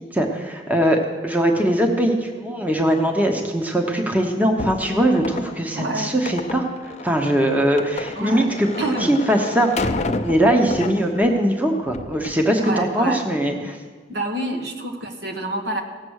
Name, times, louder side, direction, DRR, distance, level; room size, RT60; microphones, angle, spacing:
voice 1, 0.1-6.7 7.0-8.7 9.0-9.7 10.2-13.8, right 1 dB, 10° right, 3 dB, 0.9 m, -21 dB
sound 1, 4.6-11.4 11.8-12.4, left 2 dB, 40° left, 0.6 m, -30 dB
voice 2, 5.7-6.1 8.1-8.5 8.8-9.2 12.6-13.2 14.1-15.8, right 1 dB, 65° right, 3 dB, 1.5 m, -27 dB
17.5 x 7.4 x 6.4 m, 1.5 s
head